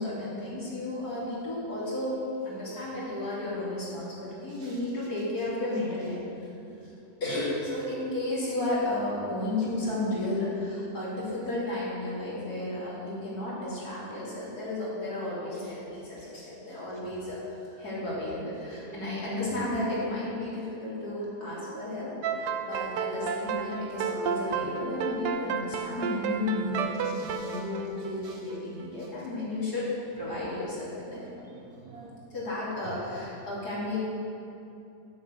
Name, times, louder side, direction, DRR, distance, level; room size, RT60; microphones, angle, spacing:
voice 1, 0.0-6.8 7.2-17.4 17.8-26.9 27.4-29.9 30.2-31.4 32.3-34.0, left 1 dB, 65° left, -8 dB, 3.4 m, -33 dB
sound 1, 22.2-28.8, right 6 dB, 85° right, 1.3 m, -31 dB
voice 2, 27.0-27.6 28.2-28.3 31.1-32.2, right 3 dB, 65° right, 0 dB, 1.2 m, -48 dB
7.7 x 7.3 x 6.8 m, 2.7 s
omnidirectional pair, 1.8 m